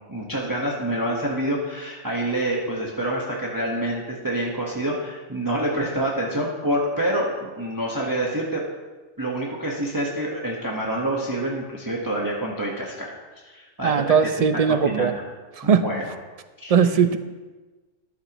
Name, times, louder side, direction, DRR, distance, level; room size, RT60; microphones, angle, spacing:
voice 1, 0.1-8.6 9.2-13.1 13.4-14.0 14.7-15.1 15.6-16.0 16.6-16.7, right 1 dB, 15° right, -4 dB, 1.4 m, -27 dB
voice 2, 13.8-15.1 15.6-15.8 16.7-17.2, right 7 dB, 45° right, 10 dB, 0.5 m, -19 dB
13.5 x 12.5 x 3.1 m, 1.3 s
omnidirectional pair, 1.3 m